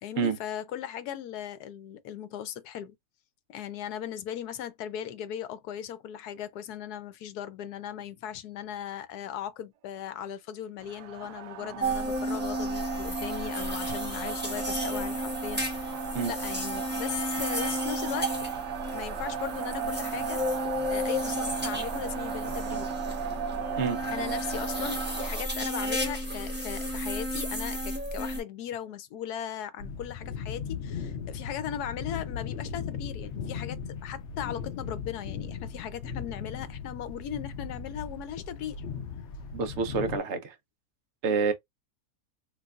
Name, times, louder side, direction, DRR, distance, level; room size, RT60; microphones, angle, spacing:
voice 1, 0.0-3.0 3.5-18.3 18.9-22.9 24.1-38.8, left 10 dB, 75° left, 1.1 m, -38 dB
sound 1, 10.8-25.5, right 8 dB, 80° right, 1.1 m, -36 dB
sound 2, 11.8-28.4, equal, 10° right, 0.9 m, -33 dB
sound 3, 29.8-40.2, left 6 dB, 55° left, 0.8 m, -37 dB
voice 2, 39.5-40.5 41.2-41.5, right 5 dB, 55° right, 0.9 m, -27 dB
3.3 x 2.9 x 2.4 m
omnidirectional pair, 1.7 m